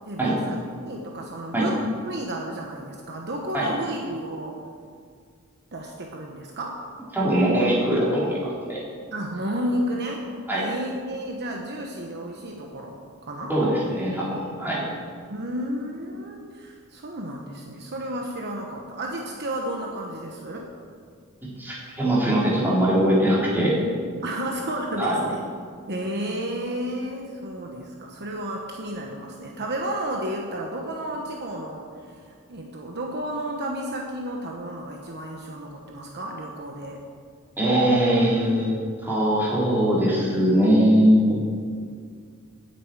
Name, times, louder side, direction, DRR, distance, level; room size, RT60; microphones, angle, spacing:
voice 1, 0.1-0.6 0.8-4.6 5.7-6.8 9.1-10.2 10.5-13.5 15.3-20.7 24.2-25.4 25.9-31.9 32.5-37.0, right 1 dB, 50° right, 1 dB, 1.1 m, -32 dB
voice 2, 7.1-8.8 10.5-10.6 13.5-14.8 21.6-23.8 25.0-25.2 37.6-38.7 39.0-41.4, equal, 10° right, -7 dB, 3.6 m, -21 dB
9.3 x 8.5 x 9.0 m, 2.1 s
head